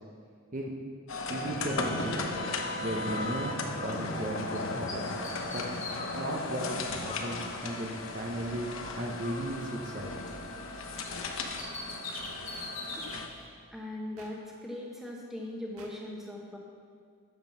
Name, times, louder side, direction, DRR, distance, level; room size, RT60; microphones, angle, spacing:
sound 1, 1.1-13.3, left 2 dB, 65° left, 0.9 m, -36 dB
voice 1, 1.3-2.2 2.8-5.1 5.5-5.7 6.1-10.1, right 1 dB, 35° right, 0 dB, 0.8 m, -36 dB
Bird, 3.0-4.6 4.9-8.3 8.7-10.8 11.0-13.2, left 3 dB, 35° left, 1.6 m, -43 dB
sound 2, 10.9-11.1 12.5-12.7 14.2-14.3 15.8-15.9, right 4 dB, 85° right, 1.6 m, -52 dB
voice 2, 13.7-16.6, left 1 dB, ahead, -2 dB, 1.2 m, -40 dB
9.5 x 7.6 x 6.2 m, 2.1 s
head